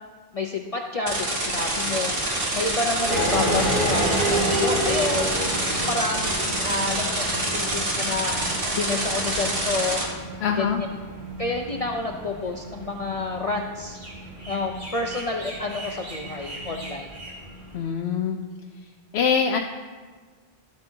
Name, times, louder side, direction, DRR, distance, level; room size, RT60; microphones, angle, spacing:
voice 1, 0.3-2.1 2.5-8.4 8.7-10.0 10.6-10.9 11.4-14.0 14.5-17.1, left 3 dB, 45° left, 2 dB, 0.5 m, -29 dB
sound 1, 1.1-10.0, right 1 dB, 60° right, 1.6 m, -26 dB
sound 2, 3.1-17.7, equal, 85° right, 2.6 m, -31 dB
voice 2, 10.4-10.8 17.7-18.4 19.1-19.6, left 6 dB, 85° left, 3 dB, 0.8 m, -23 dB
12.5 x 8.1 x 2.7 m, 1.5 s
omnidirectional pair, 1.1 m